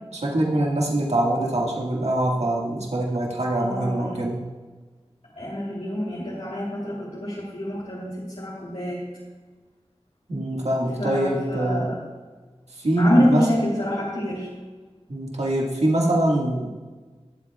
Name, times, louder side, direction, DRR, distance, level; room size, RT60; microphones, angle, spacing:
voice 1, 0.1-4.4 10.3-11.9 12.7-13.4 15.1-16.7, right 1 dB, 75° right, -3 dB, 1.8 m, -23 dB
voice 2, 3.6-4.2 5.4-9.0 11.0-12.0 13.0-14.5, equal, 75° left, -8 dB, 3.1 m, -26 dB
20.5 x 8.1 x 2.4 m, 1.3 s
wide cardioid pair, 45°, 11 cm